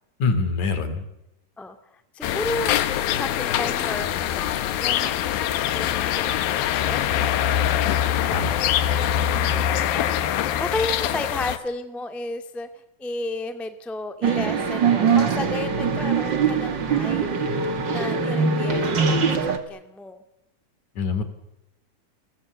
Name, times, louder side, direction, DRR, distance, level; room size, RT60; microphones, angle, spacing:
voice 1, 0.2-1.1 8.3-8.6 21.0-21.2, left 4 dB, 55° left, 10 dB, 4.0 m, -24 dB
voice 2, 2.1-2.8 3.1-6.4 6.8-7.8 9.5-12.7 13.0-17.4 17.9-20.2, left 2 dB, ahead, 8 dB, 1.1 m, -33 dB
sound 1, 2.2-11.6, left 11 dB, 85° left, 3.0 m, -23 dB
sound 2, 14.2-19.6, right 5 dB, 35° right, 2.2 m, -22 dB
30.0 x 21.5 x 8.1 m, 0.90 s
omnidirectional pair, 4.1 m